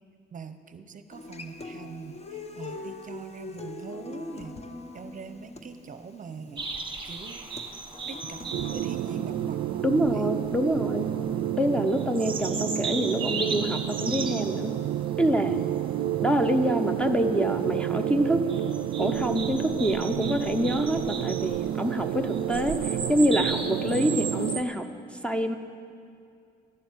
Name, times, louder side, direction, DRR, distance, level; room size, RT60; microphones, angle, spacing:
voice 1, 0.3-4.6 4.9-6.7 7.0-7.6 8.1-10.3, right 5 dB, 40° right, 9 dB, 0.7 m, -42 dB
Human voice / Acoustic guitar, 1.1-9.1, left 3 dB, 30° left, 0.9 m, -42 dB
sound 1, 6.6-24.6, right 4 dB, 25° right, 1.1 m, -38 dB
sound 2, 8.5-24.6, right 12 dB, 70° right, 0.4 m, -30 dB
voice 2, 9.8-11.1 11.6-14.7 15.2-15.6 16.2-18.4 18.7-24.9 25.2-25.6, equal, 5° left, 7 dB, 0.7 m, -26 dB
12.0 x 7.2 x 9.1 m, 2.4 s
cardioid pair, 90°, 20 cm